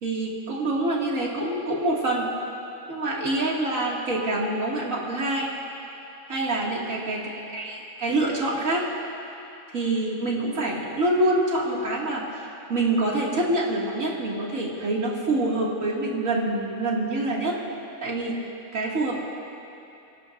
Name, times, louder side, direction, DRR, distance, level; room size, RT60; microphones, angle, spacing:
voice 1, 0.0-2.3 2.9-5.5 6.3-8.8 9.7-17.6 18.0-18.4 18.7-19.2, right 2 dB, 65° right, -4 dB, 2.7 m, -26 dB
26.0 x 17.5 x 2.6 m, 2.8 s
omnidirectional pair, 1.5 m